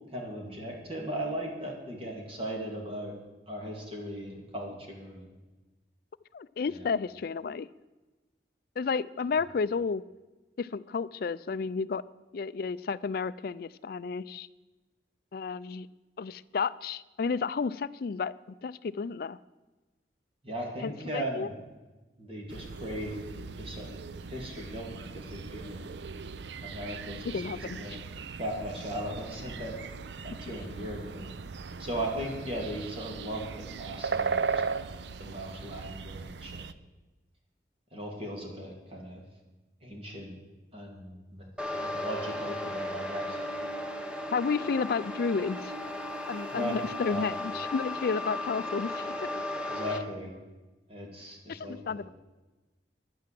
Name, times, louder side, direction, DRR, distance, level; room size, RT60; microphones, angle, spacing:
voice 1, 0.1-3.2 3.5-5.2 20.4-21.5 22.2-23.2 23.6-24.0 24.3-25.9 26.6-28.0 28.4-29.8 30.2-31.3 31.8-34.8 35.2-36.7 37.9-39.2 39.8-40.3 40.7-41.4 41.8-43.4 46.5-47.3 49.6-50.3 50.9-52.1, right 1 dB, 30° right, 0 dB, 2.5 m, -37 dB
voice 2, 6.3-7.7 8.8-10.0 10.6-12.0 12.3-14.5 15.3-15.9 16.2-19.4 20.8-21.5 27.3-27.8 44.3-45.7 46.3-49.1 51.5-52.1, left 5 dB, 55° left, 16 dB, 0.4 m, -32 dB
sound 1, 22.5-36.7, right 5 dB, 75° right, 0.5 m, -38 dB
sound 2, 41.6-50.0, left 1 dB, 5° right, 0.9 m, -36 dB
10.5 x 9.5 x 7.5 m, 1.2 s
head